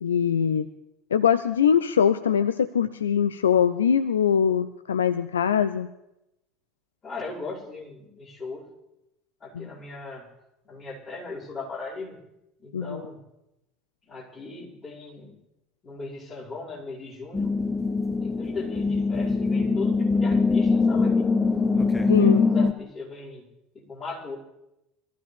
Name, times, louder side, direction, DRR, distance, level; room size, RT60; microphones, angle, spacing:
voice 1, 0.0-0.7 1.1-5.9 9.5-9.7 12.7-13.0 22.1-22.5, left 8 dB, 75° left, 13 dB, 0.4 m, -22 dB
voice 2, 7.0-8.7 9.4-10.3 10.6-12.2 12.6-13.2 14.0-15.4 15.8-17.5 18.2-21.3 22.1-23.4 23.7-24.4, left 3 dB, 30° left, -7 dB, 5.6 m, -38 dB
sound 1, 17.3-22.7, left 4 dB, 15° left, 0.8 m, -22 dB
24.0 x 14.5 x 3.5 m, 0.88 s
figure-of-eight pair, 70°, 0 cm